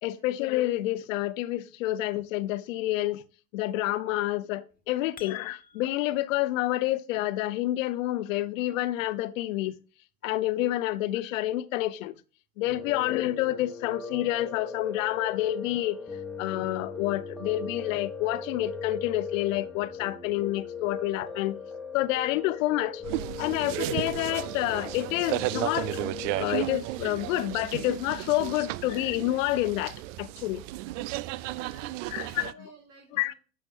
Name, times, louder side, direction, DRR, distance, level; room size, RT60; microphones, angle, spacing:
voice 1, 0.0-3.2 3.5-9.8 10.2-12.1 12.6-16.0 16.4-21.6 21.9-23.0 23.4-26.1 26.4-30.6 32.1-32.5 33.1-33.3, left 15 dB, 70° left, 0.8 m, -28 dB
sound 1, 4.7-6.2, left 8 dB, 20° left, 1.6 m, -50 dB
Piano, 12.7-26.4, left 5 dB, ahead, 1.4 m, -38 dB
sound 2, 23.0-32.5, right 17 dB, 65° right, 0.5 m, -34 dB
voice 2, 31.7-33.4, right 3 dB, 45° right, 1.9 m, -54 dB
12.0 x 6.9 x 2.6 m
hypercardioid pair, 90°, 40 cm